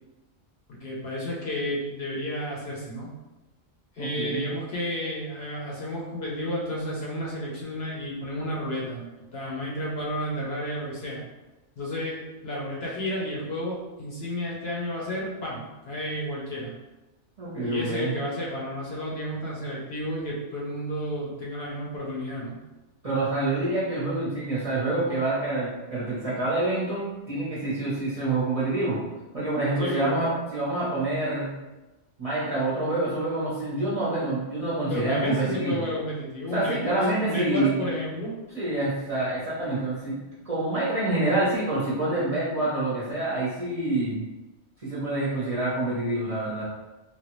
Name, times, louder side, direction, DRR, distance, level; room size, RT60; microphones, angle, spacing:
voice 1, 0.7-3.1 3.9-11.2 11.8-16.8 17.6-22.6 29.8-30.2 34.9-38.4, equal, 60° left, -5 dB, 0.9 m, -32 dB
voice 2, 4.0-4.5 17.4-18.1 23.0-29.0 29.3-31.5 32.2-35.8 36.5-37.8 38.5-44.2 44.8-46.6, right 2 dB, 35° right, -8 dB, 0.7 m, -27 dB
3.1 x 2.3 x 3.0 m, 1.1 s
omnidirectional pair, 1.3 m